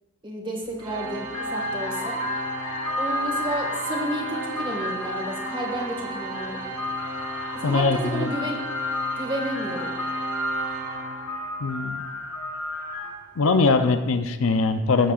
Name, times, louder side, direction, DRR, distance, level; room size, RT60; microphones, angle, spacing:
voice 1, 0.2-2.2 3.0-6.6 7.5-8.6 9.2-9.9, right 1 dB, 25° right, 0 dB, 1.8 m, -31 dB
sound 1, 0.6-0.9 1.3-13.4, left 2 dB, 85° left, 1.2 m, -32 dB
Organ, 0.8-11.6, right 3 dB, 75° right, 1.3 m, -35 dB
voice 2, 7.6-8.3 11.6-12.0 13.4-15.1, left 4 dB, 65° left, 9 dB, 0.6 m, -22 dB
14.0 x 8.5 x 2.5 m, 1.2 s
head